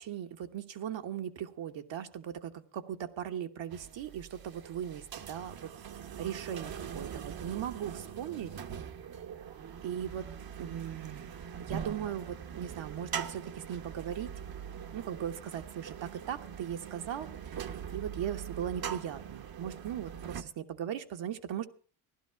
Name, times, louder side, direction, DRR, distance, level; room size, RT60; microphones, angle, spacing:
voice 1, 0.0-5.7 6.2-8.5 9.8-10.3 10.6-14.3 14.9-21.7, right 9 dB, 65° right, 7 dB, 1.3 m, -38 dB
sound 1, 3.7-20.4, right 8 dB, 45° right, 1.0 m, -42 dB
15.5 x 12.0 x 4.6 m, 0.40 s
cardioid pair, 85°, 49 cm